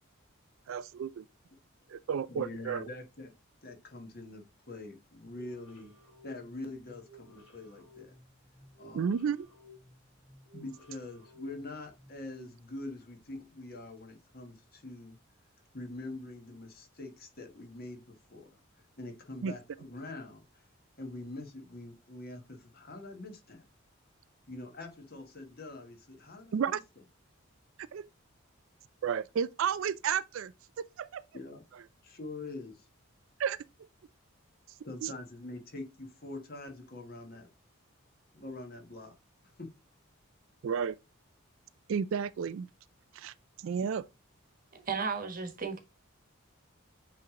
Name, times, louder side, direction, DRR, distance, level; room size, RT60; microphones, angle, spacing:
voice 1, 0.7-1.2 1.9-2.8 8.9-9.5 19.4-19.5 26.5-26.8 27.9-28.1 29.0-30.5 31.0-31.2 33.4-33.6 35.0-35.1 40.6-41.0 41.9-42.7 43.1-44.1, right 7 dB, 65° right, 0.3 m, -32 dB
voice 2, 2.3-3.3 3.6-5.9 6.2-8.1 8.8-9.1 10.5-15.2 15.7-20.6 21.0-23.6 24.5-26.8 31.3-31.6 32.0-32.9 34.8-37.5 38.3-39.1 39.4-39.7, left 2 dB, 45° left, 1.4 m, -44 dB
sound 1, 5.2-12.1, left 1 dB, 25° left, 3.6 m, -57 dB
voice 3, 44.7-45.8, right 5 dB, 40° right, 1.2 m, -34 dB
8.2 x 3.2 x 3.7 m
head